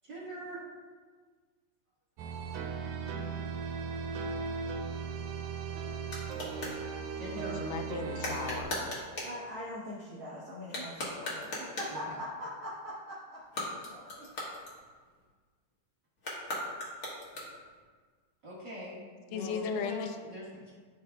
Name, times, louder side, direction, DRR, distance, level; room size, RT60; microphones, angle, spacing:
voice 1, 0.0-0.6 7.2-7.6 11.9-12.2 18.4-19.0 19.3-20.7, equal, 40° right, -8 dB, 1.8 m, -43 dB
sound 1, 2.2-8.6, right 5 dB, 90° right, 2.5 m, -37 dB
sound 2, 5.1-6.8 8.2-9.4 10.6-12.0 13.4-15.2 16.2-17.8, left 1 dB, 45° left, 1.2 m, -39 dB
voice 2, 7.6-8.8 19.3-20.2, left 6 dB, 80° left, 7 dB, 1.9 m, -36 dB
voice 3, 9.2-14.3, left 1 dB, 70° right, -7 dB, 1.2 m, -42 dB
14.0 x 5.1 x 2.3 m, 1.5 s
omnidirectional pair, 4.1 m